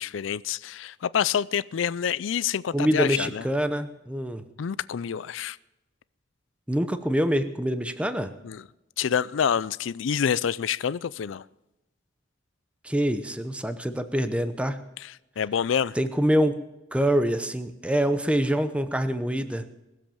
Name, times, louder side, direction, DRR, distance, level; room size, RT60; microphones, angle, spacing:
voice 1, 0.0-3.4 4.6-5.6 8.4-8.6 9.0-11.4 15.0-15.9, left 8 dB, 85° left, 0.4 m, -27 dB
voice 2, 2.7-4.4 6.7-8.3 12.8-14.8 15.9-16.6 16.9-19.7, equal, 5° right, 0.8 m, -25 dB
20.5 x 7.7 x 7.1 m
head